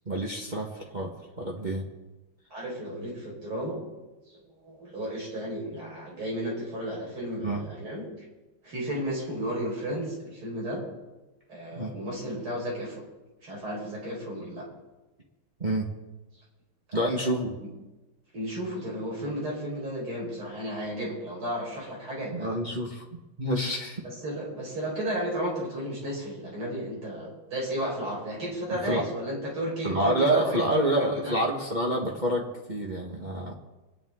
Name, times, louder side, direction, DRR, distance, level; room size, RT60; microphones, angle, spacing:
voice 1, 0.1-0.7 0.9-1.1 1.4-1.8 7.4-7.6 11.7-11.9 15.6-15.9 16.9-17.5 22.3-23.0 23.4-24.0 28.7-29.0 29.8-33.5, right 1 dB, 25° right, -2 dB, 1.4 m, -27 dB
voice 2, 2.5-3.8 4.3-8.0 8.6-10.8 11.5-13.0 13.4-14.7 16.9-17.7 18.3-22.6 24.0-31.4, equal, 85° right, -4 dB, 5.8 m, -33 dB
24.5 x 10.5 x 3.7 m, 1.1 s
omnidirectional pair, 2.3 m